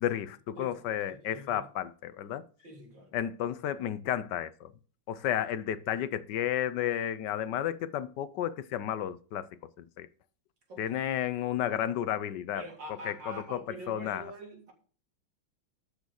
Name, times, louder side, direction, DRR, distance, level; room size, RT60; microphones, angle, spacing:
voice 1, 0.0-2.4 3.1-4.7 5.1-9.5 10.0-10.1 10.8-12.6 13.1-14.3, left 11 dB, 70° left, 1.1 m, -32 dB
voice 2, 0.5-1.7 2.6-3.1 10.7-11.0 12.5-14.7, right 1 dB, 60° right, 3.1 m, -45 dB
12.5 x 5.3 x 6.3 m
omnidirectional pair, 2.3 m